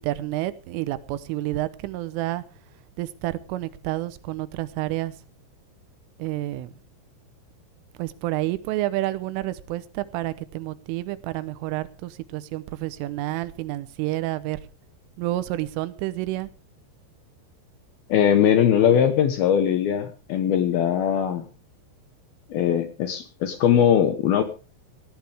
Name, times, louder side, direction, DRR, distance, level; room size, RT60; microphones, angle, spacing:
voice 1, 0.0-2.4 3.0-5.1 6.2-6.7 8.0-14.6 15.2-16.5, right 16 dB, 90° right, 14 dB, 3.5 m, -29 dB
voice 2, 18.1-21.4 22.5-24.4, left 9 dB, 70° left, 9 dB, 2.5 m, -20 dB
18.5 x 12.5 x 3.5 m, 0.33 s
omnidirectional pair, 5.6 m